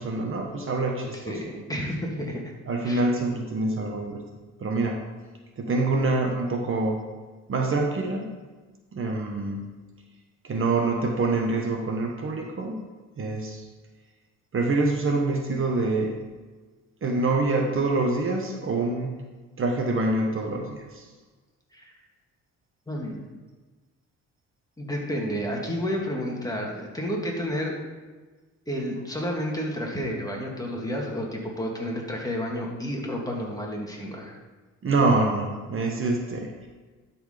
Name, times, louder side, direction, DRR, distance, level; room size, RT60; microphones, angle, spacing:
voice 1, 0.0-1.4 2.7-4.2 4.6-5.0 5.6-7.0 7.5-8.3 8.9-9.8 10.4-12.8 13.2-13.7 14.5-16.2 17.0-19.1 19.6-21.1 34.8-36.5, right 3 dB, 45° right, 2 dB, 1.3 m, -26 dB
voice 2, 1.1-2.5 2.8-3.1 21.7-21.9 22.9-23.3 24.8-27.8 28.7-34.4, equal, 10° left, -2 dB, 2.1 m, -31 dB
11.5 x 4.4 x 5.1 m, 1.3 s
cardioid pair, 90°, 30 cm